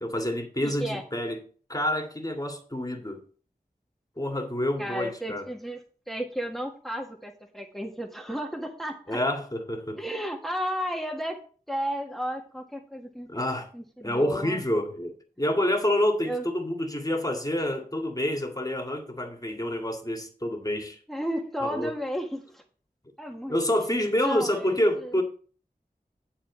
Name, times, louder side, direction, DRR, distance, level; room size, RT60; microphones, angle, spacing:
voice 1, 0.0-1.4 1.7-3.2 4.2-5.5 9.1-10.0 13.3-13.7 14.0-21.0 21.6-21.9 23.5-25.2, left 1 dB, 20° left, 2.0 m, -28 dB
voice 2, 0.6-1.0 4.8-5.8 6.1-9.2 10.0-11.4 11.7-13.3 13.7-14.6 16.2-16.4 21.1-22.6 23.2-23.6 24.2-24.7 25.0-25.2, equal, ahead, 1.6 m, -33 dB
10.0 x 4.2 x 7.2 m
wide cardioid pair, 50°, 16 cm